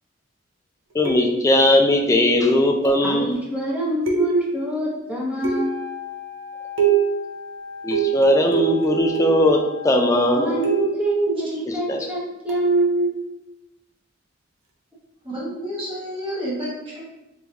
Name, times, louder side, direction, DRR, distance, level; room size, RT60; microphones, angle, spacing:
voice 1, 0.9-3.3 7.8-10.6 11.9-12.1, left 1 dB, 15° left, 2 dB, 0.3 m, -18 dB
sound 1, 1.0-1.6 2.8-3.2 4.1-4.7 5.4-5.9 6.8-7.3 7.9-9.6 10.6-11.1 12.5-12.7, right 7 dB, 70° right, 0.6 m, -24 dB
voice 2, 3.0-5.8 10.4-13.2, right 2 dB, 5° right, -6 dB, 0.9 m, -24 dB
Wind instrument woodwind instrument, 5.3-10.9, left 7 dB, 50° left, 1.0 m, -37 dB
voice 3, 15.2-17.0, equal, 25° right, -8 dB, 1.3 m, -30 dB
3.3 x 3.1 x 2.3 m, 0.92 s
head